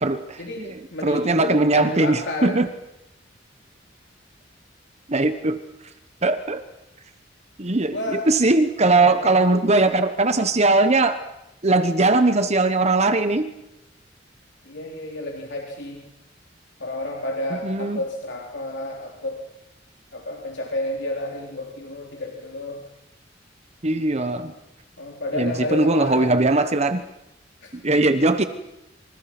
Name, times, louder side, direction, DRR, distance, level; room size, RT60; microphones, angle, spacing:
voice 1, 0.0-2.7 5.1-5.6 6.2-6.6 7.6-11.2 11.6-13.5 17.6-18.0 23.8-24.5 25.3-27.0 27.7-28.4, right 2 dB, 35° right, 9 dB, 1.2 m, -20 dB
voice 2, 0.9-2.6 7.9-8.3 9.0-9.4 14.6-16.0 16.8-19.4 20.1-22.8 25.0-26.4 27.6-27.7, left 1 dB, 65° left, -1 dB, 4.0 m, -31 dB
28.0 x 27.5 x 6.1 m, 0.90 s
head